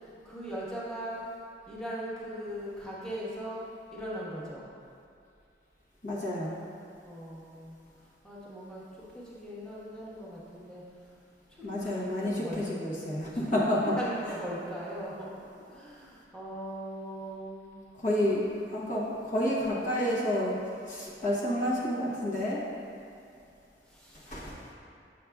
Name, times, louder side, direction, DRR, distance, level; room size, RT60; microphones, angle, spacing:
voice 1, 0.2-1.3 1.7-3.6 3.9-4.7 7.0-10.8 11.5-12.6 13.3-17.8 23.9-24.6, equal, 5° left, -9 dB, 1.1 m, -40 dB
voice 2, 6.0-6.5 11.6-14.0 18.0-22.6 24.3-24.5, left 1 dB, 45° left, -6 dB, 1.0 m, -30 dB
7.3 x 6.5 x 2.3 m, 2.6 s
head